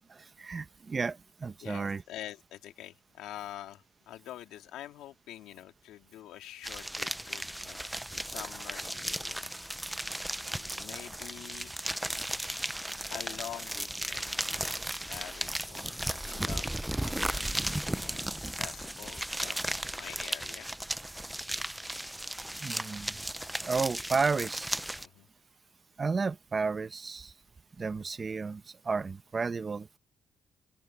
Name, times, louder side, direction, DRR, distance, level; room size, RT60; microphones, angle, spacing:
voice 1, 0.1-2.0 22.6-23.2 23.6-24.8 26.0-27.3 27.8-29.9, right 4 dB, 35° right, 1.0 m, -32 dB
voice 2, 1.6-9.4 10.4-11.8 13.1-20.7 24.1-24.2 25.0-25.3, left 13 dB, 90° left, 2.5 m, -46 dB
sound 1, 6.6-25.1, right 1 dB, 5° right, 0.6 m, -35 dB
cardioid pair, 90°, 0 cm